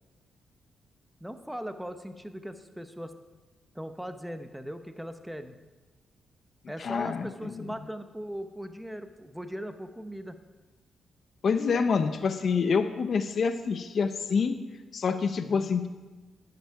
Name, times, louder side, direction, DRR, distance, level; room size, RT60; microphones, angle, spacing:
voice 1, 1.2-3.1 3.7-5.6 6.7-10.4 15.4-15.7, equal, 5° right, 9 dB, 0.8 m, -39 dB
voice 2, 6.8-7.7 11.4-14.5 14.9-15.9, left 5 dB, 60° left, 9 dB, 0.7 m, -27 dB
11.0 x 8.1 x 4.8 m, 1.2 s
cardioid pair, 80°, 0 cm